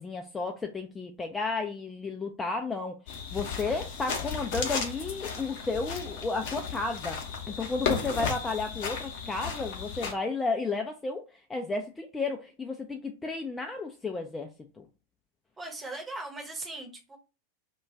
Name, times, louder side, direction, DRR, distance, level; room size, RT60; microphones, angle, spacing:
voice 1, 0.0-7.2 7.5-11.2 11.5-14.5 14.8-14.9, left 3 dB, 15° left, 0.3 m, -32 dB
walking at night, 3.1-10.1, left 6 dB, 45° left, 0.6 m, -34 dB
voice 2, 15.6-17.2, right 2 dB, 15° right, 0.8 m, -39 dB
2.2 x 2.2 x 3.6 m
figure-of-eight pair, 90°, 0 cm